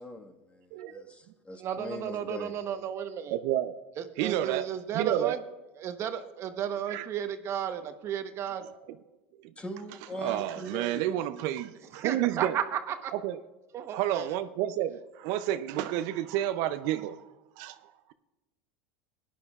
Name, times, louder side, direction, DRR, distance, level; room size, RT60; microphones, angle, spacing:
voice 1, 0.0-2.5 9.6-11.1, equal, 20° left, 1.5 m, -41 dB
voice 2, 0.7-1.1 3.3-3.8 4.2-4.7 4.9-5.4 6.9-7.1 9.4-9.5 10.2-12.6 13.1-13.4 13.9-17.2 17.6-18.1, right 12 dB, 60° right, 0.5 m, -30 dB
voice 3, 1.6-3.4 4.0-5.4 5.8-8.6 12.0-13.1 13.7-14.3, right 9 dB, 45° right, 0.9 m, -33 dB
18.0 x 10.5 x 2.4 m
hypercardioid pair, 100°, 7 cm